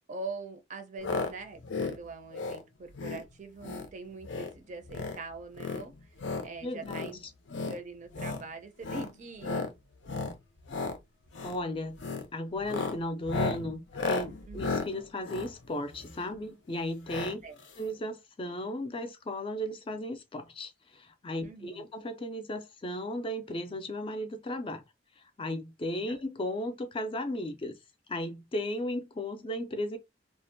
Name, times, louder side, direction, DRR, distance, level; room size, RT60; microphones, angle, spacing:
voice 1, 0.1-5.9 6.4-7.3 7.6-9.7 14.5-14.8 17.4-17.6 21.4-21.8 26.1-26.2, right 3 dB, 40° right, 0.5 m, -43 dB
sound 1, 1.0-1.3 1.6-2.0 2.3-2.6 2.9-3.2 3.6-3.9 4.2-4.5 4.8-5.2 5.5-6.5 6.8-7.1 7.5-7.8 8.1-8.4 8.8-9.1 9.4-9.7 10.0-10.3 10.6-11.0 11.3-11.6 12.0-12.2 12.6-16.3 17.1-17.3 17.6-17.7 17.9-18.0, left 3 dB, 85° left, 0.5 m, -34 dB
voice 2, 6.6-7.1 11.4-17.4 17.8-24.8 25.4-27.8 28.1-30.0, left 1 dB, 30° left, 0.4 m, -35 dB
2.5 x 2.1 x 2.6 m
head